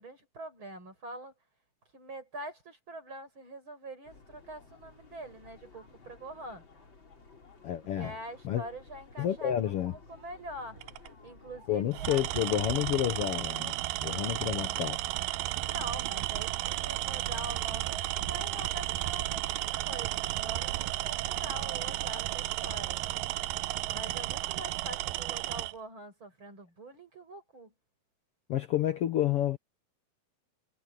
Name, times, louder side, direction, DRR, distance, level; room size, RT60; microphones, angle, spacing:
voice 1, 0.0-1.3 1.9-6.6 8.0-10.8 11.2-12.2 15.6-23.0 23.9-27.7, right 1 dB, 35° right, 7.4 m, -44 dB
sound 1, 4.0-13.3, left 4 dB, 35° left, 4.6 m, -55 dB
voice 2, 7.6-8.1 8.4-8.6 9.2-9.9 11.7-13.7 14.0-15.0 28.5-29.6, left 11 dB, 85° left, 1.3 m, -29 dB
Tools, 10.8-11.1 11.9-25.7, right 17 dB, 80° right, 2.2 m, -33 dB
omnidirectional pair, 4.1 m